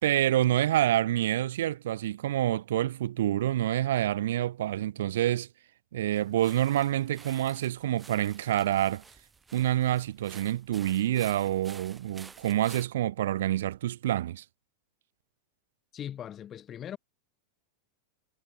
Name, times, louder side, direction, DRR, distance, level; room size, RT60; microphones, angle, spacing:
voice 1, 0.0-5.5 5.9-9.0 9.5-14.4, right 13 dB, 60° right, 1.3 m, -27 dB
sound 1, 6.2-12.9, right 4 dB, 15° right, 2.7 m, -51 dB
voice 2, 15.9-17.0, left 10 dB, 25° left, 2.2 m, -39 dB
figure-of-eight pair, 90°, 0 cm